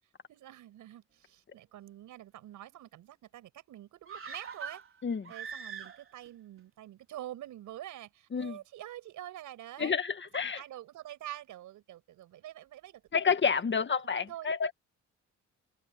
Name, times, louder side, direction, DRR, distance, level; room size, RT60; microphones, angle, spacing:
voice 1, 0.3-4.8 5.3-10.0 10.3-13.0 13.5-13.7 14.1-14.5, right 13 dB, 85° right, 6.3 m, -46 dB
sound 1, 4.0-6.3 6.6-6.7, right 6 dB, 45° right, 4.4 m, -43 dB
voice 2, 9.8-10.6 13.1-14.7, left 6 dB, 40° left, 1.9 m, -29 dB
cardioid pair, 90°, 30 cm